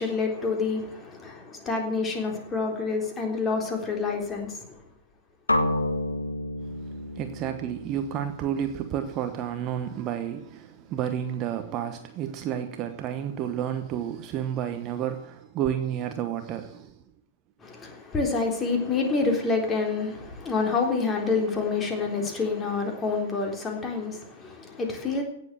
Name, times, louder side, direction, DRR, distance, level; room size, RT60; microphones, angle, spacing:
voice 1, 0.0-4.8 17.6-25.2, left 4 dB, 15° left, 3.7 m, -28 dB
sound 1, 5.5-9.4, left 1 dB, 80° left, 1.6 m, -30 dB
voice 2, 6.6-17.0, right 9 dB, 30° right, 1.1 m, -31 dB
17.0 x 7.5 x 7.9 m
figure-of-eight pair, 110°, 0 cm